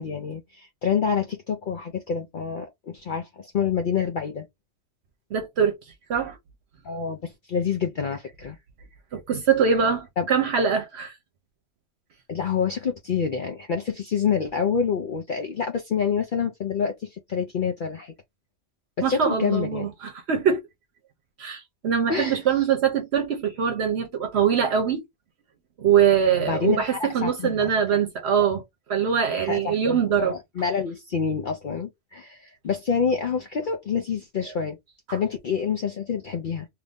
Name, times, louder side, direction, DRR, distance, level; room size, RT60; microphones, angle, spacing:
voice 1, 0.0-4.5 6.8-8.6 10.2-10.3 12.3-18.1 19.0-19.9 22.1-22.4 26.4-28.0 29.4-34.8 35.1-36.7, left 6 dB, 55° left, 0.7 m, -27 dB
voice 2, 5.3-5.8 6.1-6.4 9.1-11.1 19.0-20.6 21.4-25.0 25.8-28.6 28.9-30.4, right 7 dB, 70° right, 1.0 m, -23 dB
2.9 x 2.5 x 3.4 m
omnidirectional pair, 1.2 m